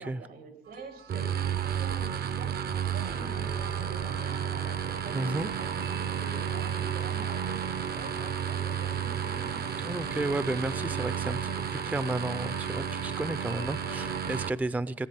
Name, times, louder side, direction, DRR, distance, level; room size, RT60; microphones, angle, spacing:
voice 1, 0.0-9.8, right 4 dB, 85° right, 5 dB, 2.4 m, -47 dB
sound 1, 0.6-14.3, right 6 dB, 70° right, 1.9 m, -53 dB
sound 2, 1.1-14.5, right 9 dB, 50° right, 0.6 m, -32 dB
sound 3, 3.2-14.5, left 8 dB, 65° left, 0.7 m, -47 dB
voice 2, 5.1-5.5 9.8-15.1, right 2 dB, 10° right, 16 dB, 0.4 m, -32 dB
18.0 x 10.0 x 5.9 m, 1.1 s
cardioid pair, 90°, 20 cm